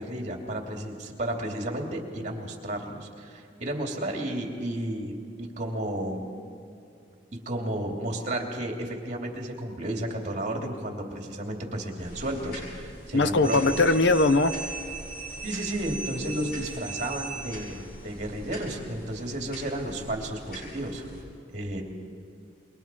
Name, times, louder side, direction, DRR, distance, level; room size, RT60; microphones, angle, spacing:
voice 1, 0.0-6.3 7.4-13.9 15.4-21.1 21.5-21.8, right 1 dB, 40° right, 1 dB, 3.0 m, -32 dB
sound 1, 12.0-21.2, equal, 60° left, 7.5 m, -44 dB
voice 2, 13.1-14.5, left 3 dB, 75° left, 12 dB, 0.8 m, -20 dB
sound 2, 13.4-17.9, right 4 dB, 5° right, 3.2 m, -38 dB
27.0 x 23.0 x 4.6 m, 2.5 s
head